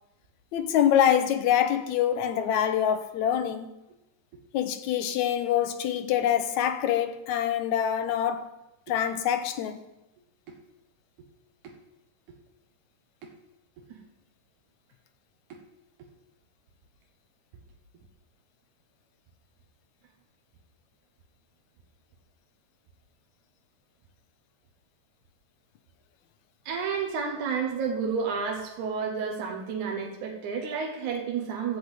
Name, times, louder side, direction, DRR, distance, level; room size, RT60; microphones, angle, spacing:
voice 1, 0.5-3.7 4.5-8.5 8.9-9.8, left 10 dB, 75° left, 2.1 m, -25 dB
voice 2, 26.7-31.8, right 6 dB, 75° right, 2.6 m, -31 dB
15.5 x 5.5 x 7.9 m
omnidirectional pair, 3.5 m